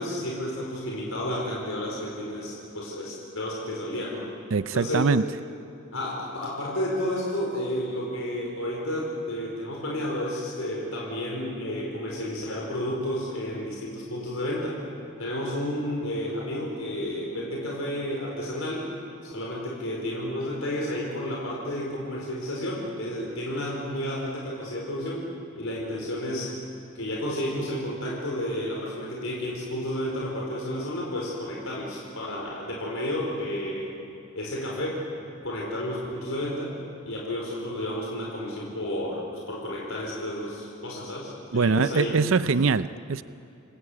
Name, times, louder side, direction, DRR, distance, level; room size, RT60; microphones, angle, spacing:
voice 1, 0.0-4.2 4.7-5.2 5.9-14.8 15.2-18.9 19.2-25.3 25.5-26.5 26.9-33.9 34.3-35.0 35.4-36.7 37.0-42.5, left 1 dB, 85° left, 4.8 m, -31 dB
voice 2, 4.5-5.2 41.5-43.2, right 4 dB, 70° right, 0.6 m, -23 dB
29.0 x 21.5 x 8.7 m
head